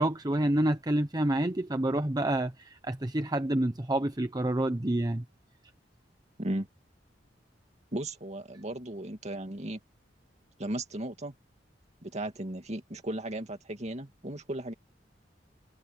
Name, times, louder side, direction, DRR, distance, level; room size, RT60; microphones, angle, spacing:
voice 1, 0.0-5.2, right 1 dB, 20° right, 0.9 m, -28 dB
voice 2, 7.9-9.8 10.6-11.3 12.0-14.7, right 1 dB, 40° right, 2.2 m, -36 dB
head